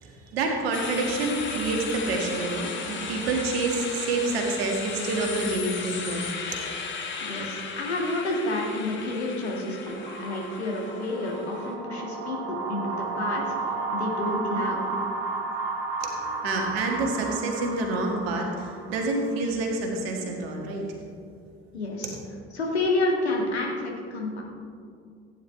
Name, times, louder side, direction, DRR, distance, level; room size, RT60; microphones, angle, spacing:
voice 1, 0.0-6.2 6.5-6.6 16.0-21.0, right 3 dB, 65° right, 1 dB, 1.8 m, -28 dB
sound 1, 0.7-11.7, left 5 dB, 35° left, 1.6 m, -36 dB
voice 2, 7.2-14.8 21.7-22.2 22.5-24.4, left 2 dB, 80° left, -2 dB, 1.8 m, -29 dB
sound 2, 9.9-19.3, right 3 dB, 50° right, 2.3 m, -33 dB
15.5 x 9.5 x 3.2 m, 2.3 s
figure-of-eight pair, 55°, 32 cm